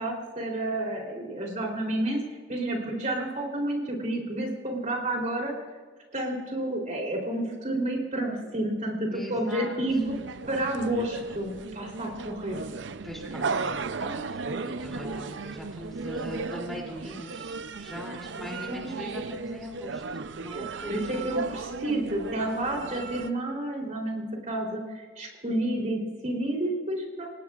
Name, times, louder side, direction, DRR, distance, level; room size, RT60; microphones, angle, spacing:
voice 1, 0.0-2.2 2.5-5.5 6.1-10.1 10.5-12.6 18.7-18.9 20.9-27.3, right 1 dB, 40° right, 0 dB, 3.4 m, -30 dB
voice 2, 9.1-9.7 13.0-20.0 20.4-21.3, equal, ahead, -2 dB, 2.9 m, -41 dB
sound 1, 9.9-23.3, right 4 dB, 70° right, 0.6 m, -36 dB
28.0 x 17.5 x 2.5 m, 1.4 s
head